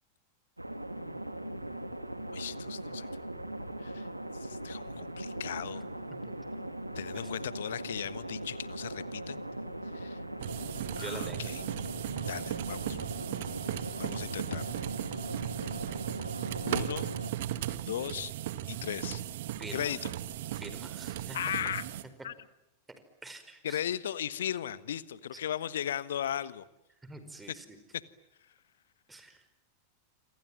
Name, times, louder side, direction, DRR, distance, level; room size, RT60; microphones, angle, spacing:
sound 1, 0.6-17.3, right 1 dB, 85° right, 2.3 m, -40 dB
voice 1, 2.3-3.1 3.8-4.1 4.4-5.8 6.9-9.4 9.9-10.2 10.9-11.6 12.2-13.0 14.0-14.8 16.6-17.1 17.8-18.3 18.7-19.2 19.7-20.1 21.3-21.8 22.2-22.3 23.6-26.6 27.9-28.0, left 10 dB, 60° left, 17 dB, 1.3 m, -36 dB
sound 2, 10.4-22.0, right 12 dB, 55° right, 1.7 m, -37 dB
voice 2, 10.9-11.5 19.6-20.0 20.5-21.4 23.2-23.8 27.0-27.8 29.1-29.4, right 2 dB, 10° right, 9 dB, 5.2 m, -45 dB
28.0 x 26.5 x 7.5 m, 0.87 s
figure-of-eight pair, 90°, 0 cm